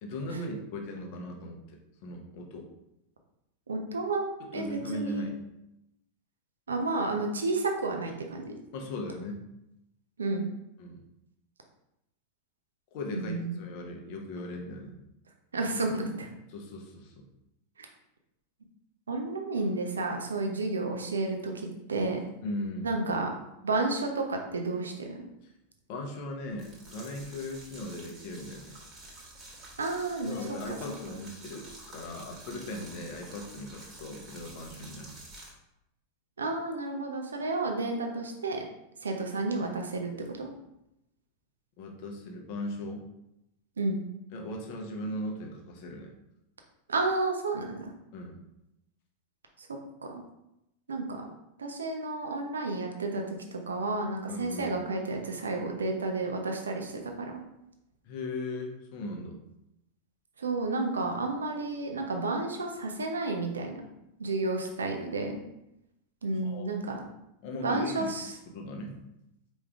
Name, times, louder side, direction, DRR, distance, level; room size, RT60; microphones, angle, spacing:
voice 1, 0.0-1.6 2.0-2.7 4.4-5.4 8.7-9.4 10.8-11.0 12.9-15.0 16.5-17.3 22.4-22.9 25.4-25.5 25.9-28.8 30.3-35.1 41.8-43.0 44.3-46.1 48.1-48.4 54.3-54.8 58.0-59.4 66.4-66.7 67.4-68.1 68.5-69.0, left 1 dB, 45° left, 2 dB, 0.9 m, -38 dB
voice 2, 3.7-4.3 4.5-5.3 6.7-8.5 10.2-10.5 13.1-13.6 15.5-16.3 17.8-17.9 19.1-22.2 22.8-23.3 23.6-25.2 29.8-30.4 30.7-30.8 36.4-38.6 39.0-40.5 43.8-44.0 46.9-47.9 49.6-49.7 50.0-50.2 50.9-51.2 51.6-57.4 60.4-63.8 64.2-65.4 66.2-67.0 67.5-68.3, right 3 dB, 70° right, 3 dB, 0.7 m, -31 dB
sound 1, 26.5-35.5, right 2 dB, 25° right, 1.5 m, -49 dB
4.8 x 3.2 x 3.5 m, 0.85 s
figure-of-eight pair, 90°, 0 cm